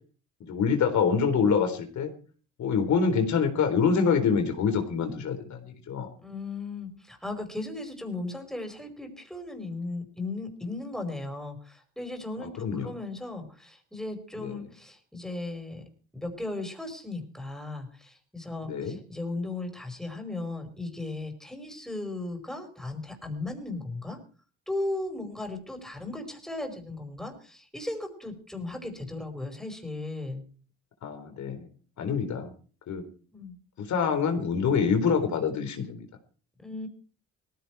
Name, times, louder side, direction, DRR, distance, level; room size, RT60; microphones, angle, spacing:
voice 1, 0.4-2.1 2.6-6.1 12.4-12.9 14.4-14.7 18.6-19.0 31.0-31.7 32.0-32.5 32.9-33.0 33.8-36.1, left 6 dB, 70° left, 6 dB, 3.8 m, -26 dB
voice 2, 6.2-15.8 16.1-24.2 24.7-30.4 33.3-33.6 36.6-36.9, left 2 dB, ahead, 5 dB, 5.0 m, -36 dB
18.5 x 15.5 x 4.7 m, 0.41 s
cardioid pair, 90°, 30 cm